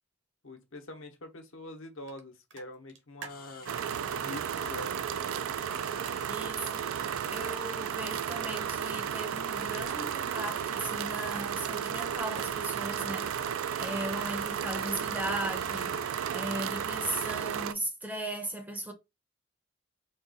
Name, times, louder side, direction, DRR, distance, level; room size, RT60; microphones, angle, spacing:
voice 1, 0.4-5.1, left 1 dB, 75° left, 0.9 m, -45 dB
sound 1, 2.1-2.2 2.5-4.3 6.0-6.3 9.8-10.3 12.1-12.5 13.8-14.7, right 5 dB, 60° right, 1.0 m, -48 dB
sound 2, 3.3-17.0, left 7 dB, 45° left, 0.6 m, -52 dB
sound 3, 3.7-17.7, right 8 dB, 85° right, 0.3 m, -33 dB
voice 2, 6.3-6.9 7.3-13.3 13.8-16.0 16.3-18.9, right 1 dB, 10° right, 0.6 m, -37 dB
3.8 x 2.3 x 3.9 m
head